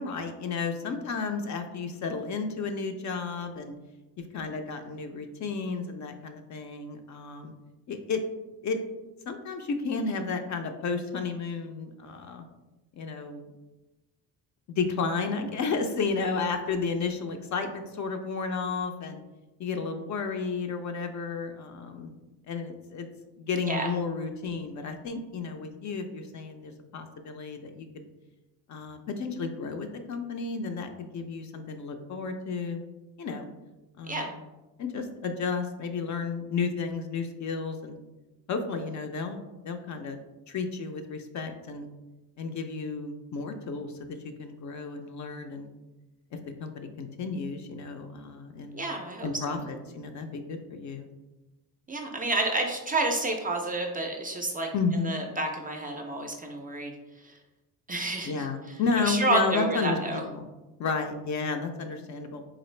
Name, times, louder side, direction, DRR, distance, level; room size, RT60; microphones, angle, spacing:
voice 1, 0.0-3.7 4.2-7.5 7.9-8.2 8.6-8.8 9.3-12.4 12.9-13.5 14.8-19.2 19.6-22.1 22.5-23.1 23.4-28.0 28.7-32.8 33.2-33.5 34.0-34.4 34.8-38.0 38.5-40.2 40.5-41.9 42.4-45.7 46.6-48.8 49.2-51.1 54.7-55.1 58.2-60.4 60.8-62.4, left 4 dB, 50° left, 6 dB, 0.4 m, -32 dB
voice 2, 48.7-49.6 51.9-54.7 55.0-56.9 57.2-57.3 57.9-58.5 59.0-60.2, right 2 dB, 25° right, 2 dB, 0.3 m, -29 dB
3.9 x 2.4 x 3.1 m, 1.1 s
cardioid pair, 110°, 39 cm